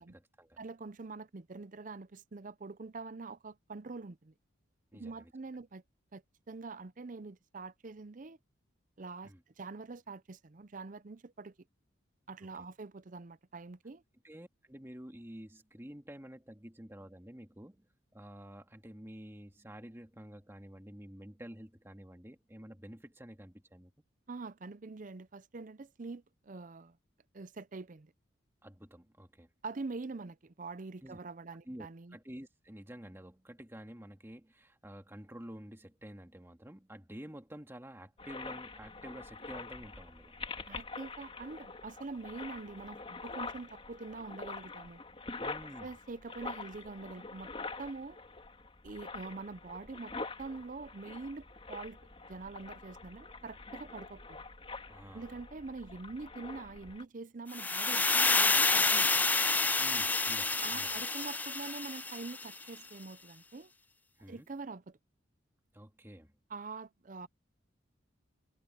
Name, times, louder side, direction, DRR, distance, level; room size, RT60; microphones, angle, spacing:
voice 1, 0.0-0.6 4.9-5.3 9.2-9.4 14.2-17.9 18.1-23.9 28.6-29.5 31.0-31.2 31.7-40.8 45.4-45.9 54.9-55.4 59.8-61.1 64.2-64.5 65.7-66.3, equal, 10° right, 2.1 m, -50 dB
voice 2, 0.6-4.3 4.9-5.8 6.1-8.4 9.0-11.5 12.3-14.0 24.3-27.0 27.3-28.1 29.6-32.2 40.6-45.0 45.8-47.5 47.8-48.2 48.8-52.0 52.3-54.4 55.1-59.3 60.6-63.7 64.3-65.0 66.5-67.3, right 3 dB, 40° right, 0.6 m, -45 dB
sound 1, 38.2-57.0, left 3 dB, 30° left, 3.0 m, -45 dB
sound 2, 57.5-62.6, left 3 dB, 10° left, 0.3 m, -28 dB
head